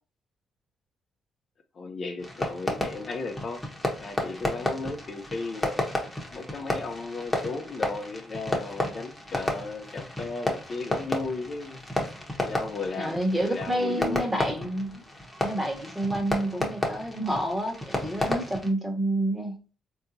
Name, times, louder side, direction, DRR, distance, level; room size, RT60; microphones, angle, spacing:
voice 1, 1.7-3.6 4.0-5.8 6.3-11.8 12.4-13.2 13.4-14.3, left 3 dB, 50° left, 0.5 m, -35 dB
Fireworks, 2.2-18.7, left 1 dB, 10° left, 1.0 m, -32 dB
voice 2, 13.0-15.0 15.4-19.6, right 1 dB, 15° right, 1.3 m, -29 dB
3.8 x 2.7 x 2.6 m
cardioid pair, 90°, 0 cm